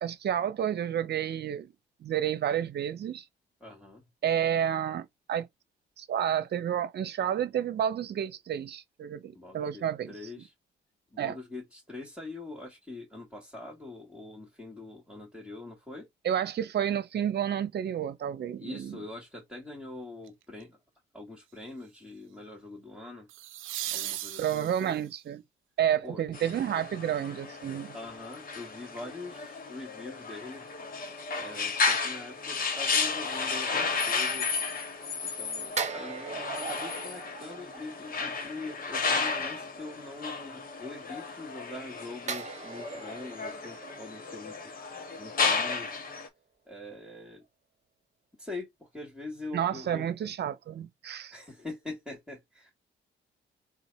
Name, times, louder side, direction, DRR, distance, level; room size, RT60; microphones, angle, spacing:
voice 1, 0.0-1.7 2.0-3.2 4.2-5.5 6.0-10.1 11.2-11.3 16.2-19.0 24.4-25.4 25.8-27.9 49.5-51.3, right 9 dB, 55° right, 0.8 m, -30 dB
voice 2, 3.6-4.0 9.3-10.5 11.1-16.1 18.6-20.8 21.1-23.3 23.9-25.0 26.0-26.2 27.9-30.7 31.3-34.6 35.2-44.7 45.2-46.0 46.7-47.5 48.4-50.1 51.3-52.7, left 2 dB, 5° right, 2.6 m, -43 dB
sound 1, 20.3-20.6 23.3-25.2 28.1-28.2, right 14 dB, 85° right, 0.5 m, -37 dB
sound 2, 26.3-46.3, left 4 dB, 45° left, 1.4 m, -33 dB
sound 3, 35.8-38.4 42.3-45.5 45.8-46.0, right 5 dB, 35° right, 1.2 m, -40 dB
3.8 x 2.4 x 4.3 m
cardioid pair, 90°, 20 cm